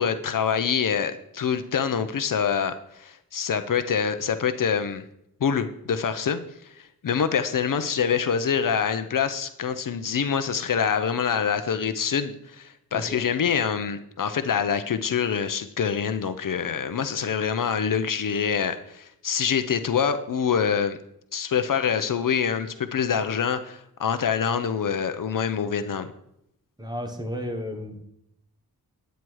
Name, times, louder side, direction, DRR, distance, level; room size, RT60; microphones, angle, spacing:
voice 1, 0.0-5.0 5.4-6.4 6.8-21.0 21.3-26.1, left 7 dB, 60° left, 10 dB, 0.7 m, -25 dB
voice 2, 12.9-13.2 26.8-28.0, equal, 10° right, 4 dB, 1.4 m, -33 dB
9.9 x 9.2 x 4.7 m, 0.78 s
wide cardioid pair, 170°, 37 cm